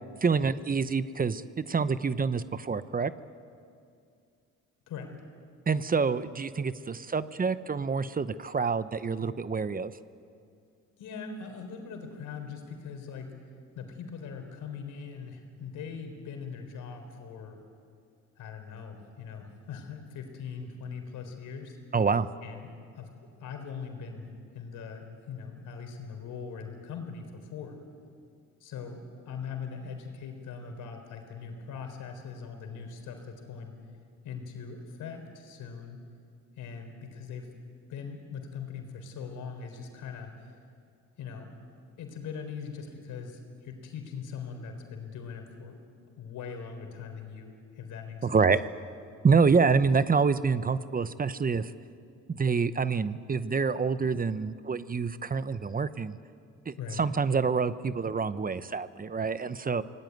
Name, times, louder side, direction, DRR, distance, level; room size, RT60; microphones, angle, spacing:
voice 1, 0.2-3.1 5.7-9.9 21.9-22.3 48.2-48.6 49.2-51.7 52.3-56.2 56.7-59.8, right 5 dB, 30° right, 14 dB, 0.8 m, -27 dB
voice 2, 11.0-13.3 13.8-17.6 18.4-21.8 22.4-22.7 23.0-24.3 24.5-27.8 28.6-33.7 34.2-36.0 36.6-37.5 37.9-40.5 41.2-41.5 42.0-45.8 46.2-48.4 56.8-57.0, left 6 dB, 85° left, 5 dB, 4.0 m, -41 dB
25.0 x 18.5 x 9.3 m, 2.4 s
cardioid pair, 90°, 30 cm